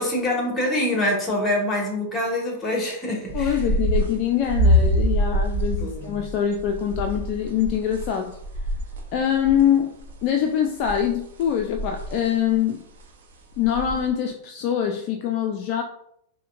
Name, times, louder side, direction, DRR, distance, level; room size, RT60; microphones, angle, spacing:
voice 1, 0.0-3.6 5.8-6.2, left 1 dB, 15° left, -1 dB, 1.5 m, -25 dB
voice 2, 3.3-8.4 9.1-12.8 13.6-15.8, left 9 dB, 50° left, 4 dB, 0.3 m, -24 dB
sound 1, 3.3-9.6 10.0-10.2 10.8-12.2 12.5-12.6 13.0-13.1 13.6-14.1, equal, 70° right, 0.7 m, -24 dB
5.0 x 2.1 x 2.5 m, 0.73 s
hypercardioid pair, 100°, 0 cm